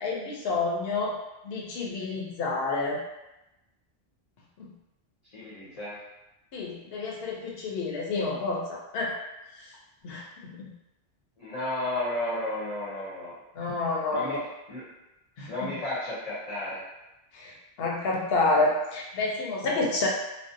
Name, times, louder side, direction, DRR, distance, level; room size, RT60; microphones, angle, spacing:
voice 1, 0.0-1.2 1.4-3.0 4.6-4.7 6.5-9.2 9.6-9.7 10.0-10.7 13.5-14.4 15.4-15.8 17.3-20.1, left 3 dB, 70° left, -2 dB, 0.8 m, -29 dB
voice 2, 5.3-6.0 11.4-13.3 14.1-14.4 14.7-14.8 15.5-16.8, left 1 dB, 40° left, -9 dB, 0.7 m, -32 dB
2.5 x 2.0 x 2.5 m, 0.95 s
omnidirectional pair, 1.1 m